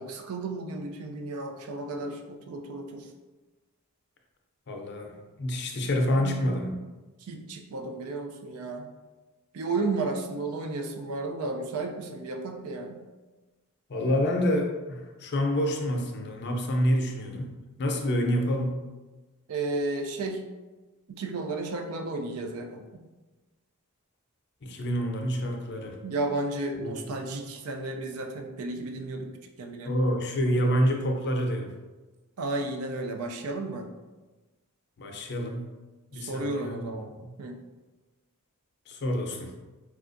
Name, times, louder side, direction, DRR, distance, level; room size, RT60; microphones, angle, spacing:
voice 1, 0.0-3.1 6.2-6.4 7.2-8.9 9.5-13.0 19.5-20.4 21.1-23.1 26.0-29.3 29.6-29.9 32.4-33.9 36.1-37.1 37.4-37.6, right 2 dB, 75° right, 3 dB, 0.4 m, -33 dB
voice 2, 4.7-6.7 13.9-18.8 24.6-26.0 26.8-27.1 29.8-31.7 35.0-35.7 36.1-36.9 37.1-37.3 38.9-39.5, equal, 50° left, 2 dB, 0.5 m, -28 dB
4.3 x 2.4 x 2.5 m, 1.2 s
head